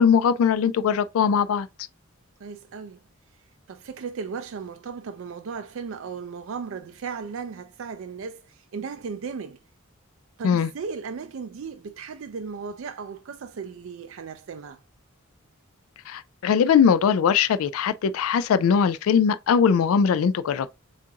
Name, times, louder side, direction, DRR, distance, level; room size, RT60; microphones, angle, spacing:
voice 1, 0.0-1.7 10.4-10.7 16.1-20.7, left 7 dB, 80° left, 0.3 m, -20 dB
voice 2, 2.4-3.0 3.7-9.6 10.4-14.8, right 5 dB, 65° right, 0.4 m, -36 dB
7.2 x 2.5 x 2.8 m
head